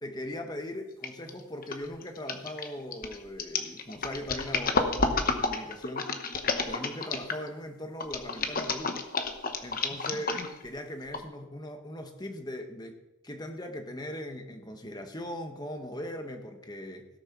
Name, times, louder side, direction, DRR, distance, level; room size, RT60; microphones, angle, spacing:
voice 1, 0.0-6.1 6.6-9.0 9.6-17.1, left 1 dB, 20° left, 6 dB, 1.2 m, -39 dB
sound 1, 1.0-1.3 1.6-7.5 8.0-10.7 11.1-11.2, left 4 dB, 40° left, 1.0 m, -30 dB
17.5 x 6.6 x 5.9 m, 1.0 s
head